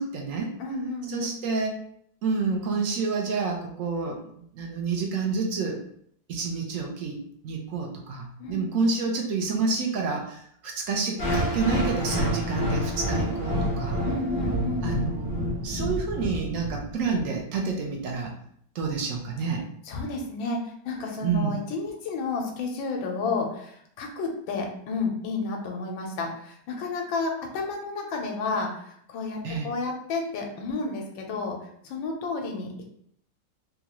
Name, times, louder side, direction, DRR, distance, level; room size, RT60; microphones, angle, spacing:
voice 1, 0.0-0.5 1.1-1.8 2.2-4.2 4.5-5.8 6.3-7.2 7.4-14.0 14.8-18.3 18.7-19.6 21.2-21.6 29.4-29.7, right 4 dB, 70° right, 0 dB, 0.7 m, -29 dB
voice 2, 0.6-1.4 8.4-8.6 14.0-14.9 19.8-32.9, left 3 dB, 80° left, 1 dB, 1.4 m, -31 dB
sound 1, 11.2-17.2, equal, 45° left, 0.6 m, -28 dB
3.8 x 2.3 x 2.9 m, 0.66 s
omnidirectional pair, 2.1 m